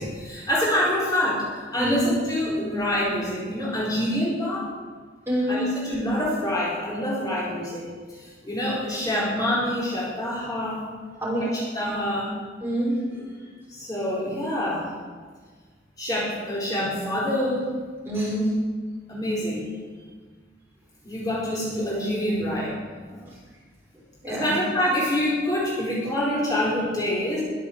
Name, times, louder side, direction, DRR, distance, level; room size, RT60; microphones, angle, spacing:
voice 1, 0.0-4.7 5.5-7.8 8.2-10.8 11.5-12.3 13.7-14.9 16.0-17.7 19.1-19.7 21.0-22.7 23.1-23.2 24.3-27.4, left 1 dB, 20° left, -7 dB, 4.4 m, -26 dB
voice 2, 5.3-5.6 11.2-11.5 12.6-13.3 18.1-18.4 24.2-24.5, equal, 15° right, -6 dB, 6.2 m, -26 dB
21.5 x 8.3 x 8.1 m, 1.5 s
head